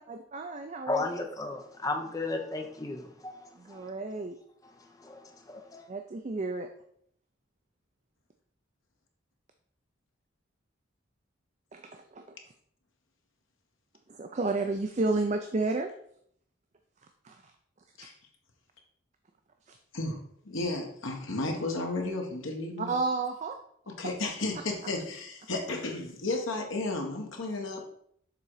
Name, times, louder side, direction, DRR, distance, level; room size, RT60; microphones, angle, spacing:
voice 1, 0.0-1.2 3.5-4.4 5.9-6.7 11.7-12.2 14.1-15.9 17.2-17.5 19.7-19.8 22.8-23.6, right 3 dB, 35° right, 0.4 m, -32 dB
voice 2, 0.9-3.9 5.0-5.9, left 2 dB, 15° left, 0.7 m, -35 dB
voice 3, 20.4-22.9 24.0-27.8, left 2 dB, 70° left, 1.3 m, -33 dB
6.8 x 3.8 x 4.7 m
head